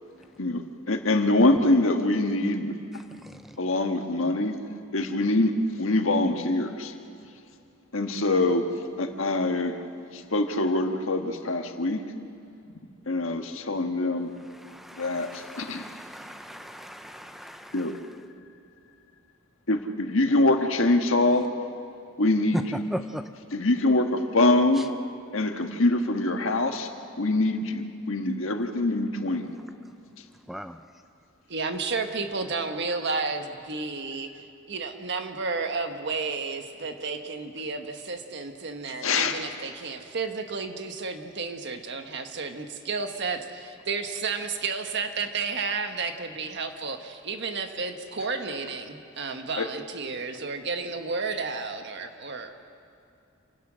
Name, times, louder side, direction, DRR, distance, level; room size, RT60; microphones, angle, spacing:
voice 1, 0.4-2.7 3.6-4.6 4.9-6.9 7.9-8.7 9.0-9.8 10.1-12.0 13.0-14.3 15.0-15.9 17.7-18.0 19.7-21.5 22.2-22.8 23.5-24.9 25.3-26.9 27.2-29.6 39.0-39.4 49.6-49.7, left 2 dB, 80° left, 5 dB, 1.5 m, -24 dB
voice 2, 3.1-3.6 14.5-18.0 22.5-23.3 24.8-24.9 30.5-30.8, equal, ahead, 8 dB, 0.5 m, -37 dB
voice 3, 31.5-52.5, right 4 dB, 60° right, 6 dB, 1.4 m, -32 dB
28.0 x 16.5 x 6.3 m, 2.5 s
head